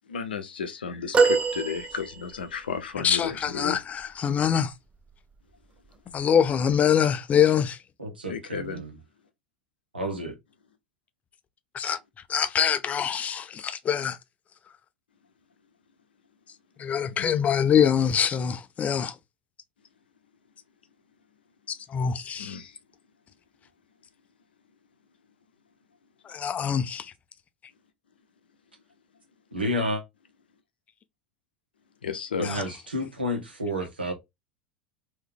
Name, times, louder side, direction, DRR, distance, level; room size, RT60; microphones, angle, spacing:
voice 1, 0.1-3.8 8.3-8.8 17.2-17.3 22.4-22.8 32.0-32.8, left 6 dB, 70° left, 0.7 m, -33 dB
sound 1, 1.1-2.6 4.9-5.1 6.4-6.5, right 4 dB, 20° right, 0.7 m, -24 dB
voice 2, 3.0-4.7 6.1-7.8 11.7-12.0 12.3-14.2 16.8-19.2 21.7-22.6 26.2-27.1 32.4-32.6, left 8 dB, 25° left, 0.5 m, -24 dB
voice 3, 8.0-8.9 9.9-10.3 29.5-30.0 32.4-34.1, equal, 80° right, 1.4 m, -30 dB
3.5 x 3.0 x 3.6 m
figure-of-eight pair, 75°, 5 cm